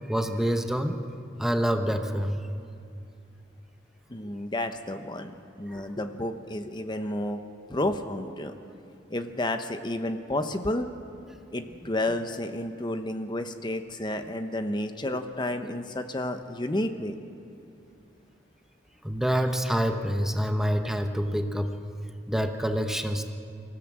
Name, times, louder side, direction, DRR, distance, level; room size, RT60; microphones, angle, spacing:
voice 1, 0.1-1.0 1.4-2.4 5.7-5.8 19.0-21.7 22.3-23.3, equal, ahead, 5 dB, 0.9 m, -27 dB
voice 2, 4.1-7.4 7.7-8.5 9.1-10.9 11.5-17.2, left 1 dB, 25° left, 7 dB, 0.9 m, -31 dB
25.5 x 15.5 x 7.5 m, 2.5 s
head